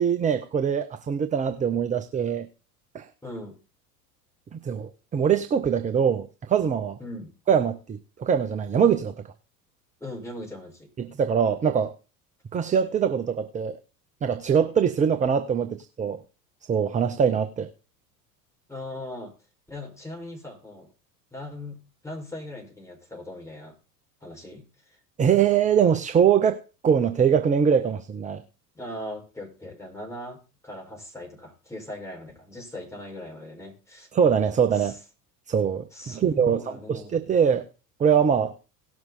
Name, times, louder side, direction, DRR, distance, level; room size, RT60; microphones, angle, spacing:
voice 1, 0.0-2.5 2.9-3.1 4.5-7.0 7.5-9.1 11.0-11.9 12.5-13.8 14.2-16.2 16.7-17.7 25.2-28.4 34.1-35.0 35.5-37.7 38.0-38.5, right 7 dB, 15° right, 0.6 m, -23 dB
voice 2, 3.2-3.6 7.0-7.3 10.0-10.9 18.7-19.3 19.7-20.9 21.3-23.8 24.2-25.0 28.7-34.1 34.7-35.0 35.9-37.2, left 1 dB, 5° left, 5.6 m, -39 dB
17.5 x 6.2 x 4.2 m
figure-of-eight pair, 75°, 48 cm